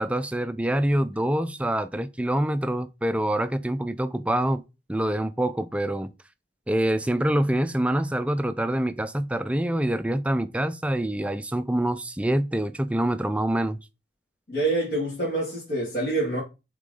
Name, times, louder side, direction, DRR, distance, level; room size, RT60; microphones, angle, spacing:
voice 1, 0.0-4.6 4.9-6.1 6.7-13.8, right 1 dB, 5° right, 0.4 m, -25 dB
voice 2, 14.5-16.4, right 2 dB, 55° left, 2.5 m, -26 dB
6.5 x 3.7 x 3.9 m
head